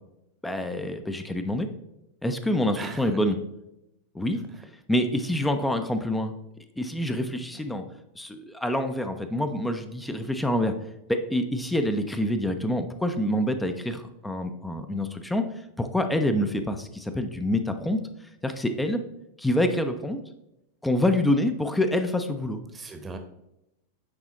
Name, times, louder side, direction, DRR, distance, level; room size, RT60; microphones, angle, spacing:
voice 1, 0.4-1.7 2.2-3.4 4.1-4.4 4.9-6.3 6.8-7.8 8.1-10.7 11.1-19.0 19.4-20.2 20.8-22.6, left 1 dB, 5° left, 8 dB, 0.6 m, -26 dB
voice 2, 2.7-3.2 4.5-4.6 22.7-23.2, right 4 dB, 15° right, 6 dB, 0.9 m, -39 dB
9.6 x 4.0 x 3.0 m, 0.87 s
figure-of-eight pair, 90°, 0 cm